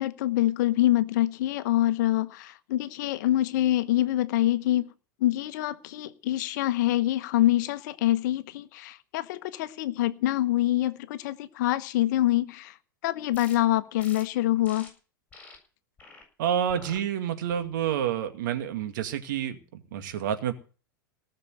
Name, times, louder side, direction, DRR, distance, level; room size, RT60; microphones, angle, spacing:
voice 1, 0.0-4.9 5.2-12.8 13.0-14.9, left 14 dB, 55° left, 1.0 m, -25 dB
sound 1, 13.3-13.6 14.0-14.2 14.6-14.9 15.3-15.6 16.0-16.2 16.7-17.0 17.5-17.9, left 3 dB, 15° left, 7.6 m, -48 dB
voice 2, 16.4-20.5, right 9 dB, 65° right, 2.2 m, -29 dB
18.5 x 6.7 x 7.9 m
figure-of-eight pair, 90°, 11 cm